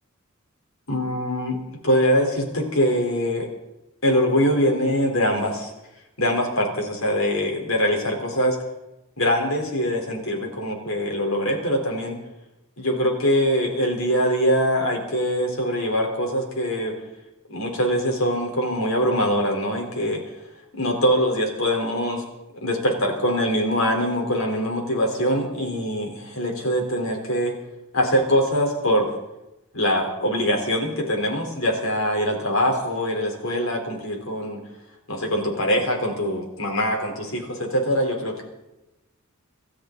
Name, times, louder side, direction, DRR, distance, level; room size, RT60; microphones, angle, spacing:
voice 1, 0.9-1.6 1.8-3.5 4.0-5.7 6.2-8.6 9.2-12.2 12.8-16.9 17.5-20.2 20.7-22.2 22.6-27.6 27.9-29.2 29.7-34.6 35.1-38.4, equal, 70° left, 2 dB, 4.0 m, -23 dB
26.5 x 13.0 x 4.0 m, 0.97 s
head